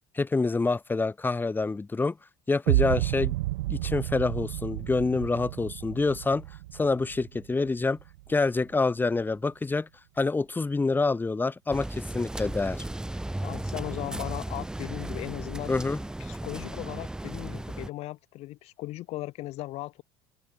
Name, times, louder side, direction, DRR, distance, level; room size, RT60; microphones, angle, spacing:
voice 1, 0.2-2.2 2.5-3.4 3.7-6.4 6.7-8.0 8.3-9.9 10.2-12.8 15.7-16.0, left 3 dB, 15° left, 3.6 m, -27 dB
sound 1, 2.7-8.7, right 18 dB, 90° right, 4.2 m, -31 dB
sound 2, 11.7-17.9, right 1 dB, 5° right, 1.1 m, -35 dB
voice 2, 13.4-15.7 16.2-20.0, left 17 dB, 60° left, 4.5 m, -37 dB
open air
supercardioid pair, 100°, 12 cm